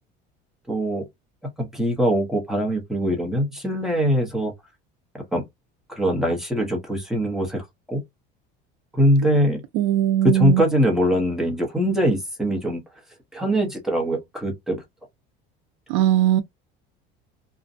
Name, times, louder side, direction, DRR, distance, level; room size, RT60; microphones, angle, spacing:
voice 1, 0.7-1.1 1.6-4.5 5.3-5.4 5.9-8.0 8.9-9.6 10.2-12.8 13.3-14.8, equal, ahead, 0.7 m, -22 dB
voice 2, 9.7-10.7 15.9-16.4, right 12 dB, 70° right, 0.4 m, -19 dB
2.5 x 2.1 x 2.5 m
cardioid pair, 160°, 21 cm